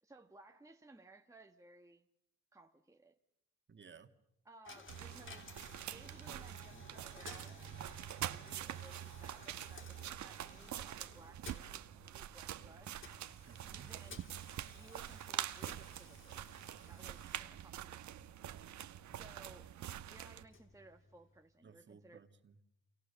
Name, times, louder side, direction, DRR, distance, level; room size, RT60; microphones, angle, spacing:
voice 1, 0.0-2.1 2.5-3.2 4.4-5.6 5.9-12.9 13.8-14.2 14.8-16.5 16.9-18.2 19.1-19.7 20.1-22.2, right 2 dB, 10° right, 1.4 m, -60 dB
voice 2, 3.7-4.1 13.5-13.9 19.1-19.3 21.6-22.8, right 5 dB, 40° right, 2.2 m, -58 dB
Coin (dropping), 4.6-21.6, left 4 dB, 40° left, 3.2 m, -58 dB
sound 1, 4.9-20.4, right 11 dB, 70° right, 1.2 m, -45 dB
29.5 x 27.5 x 7.0 m
cardioid pair, 90°, 30 cm